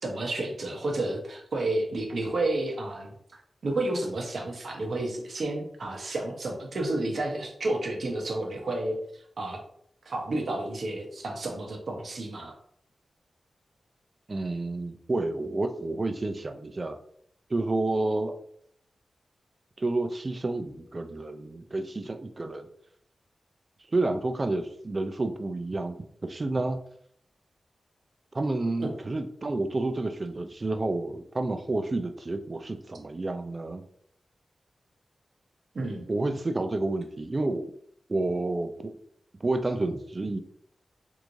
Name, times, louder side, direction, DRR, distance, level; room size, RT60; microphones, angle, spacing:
voice 1, 0.0-3.2 3.6-9.6 10.0-12.5 28.8-28.9 35.7-36.1, right 2 dB, 65° right, 1 dB, 0.8 m, -31 dB
voice 2, 14.3-17.0 17.5-18.4 19.8-22.7 23.9-26.8 28.3-33.8 36.1-37.6 38.1-39.0 39.4-40.4, right 2 dB, 35° right, 8 dB, 0.4 m, -30 dB
3.5 x 3.0 x 2.6 m, 0.66 s
wide cardioid pair, 85°, 0 cm